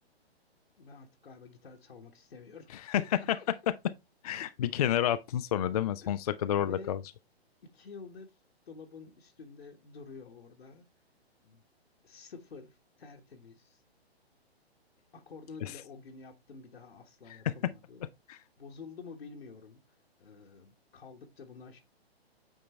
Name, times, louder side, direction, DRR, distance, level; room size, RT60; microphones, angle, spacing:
voice 1, 0.8-2.7 3.0-3.1 3.3-3.4 6.0-6.1 6.5-6.9 7.6-8.4 8.7-10.8 11.4-11.6 12.0-13.8 15.1-18.0 18.6-21.8, left 5 dB, 70° left, 1.4 m, -49 dB
voice 2, 4.2-7.0 15.6-15.7 18.3-18.4, left 10 dB, 40° left, 0.4 m, -29 dB
8.8 x 3.8 x 3.2 m
figure-of-eight pair, 125°, 32 cm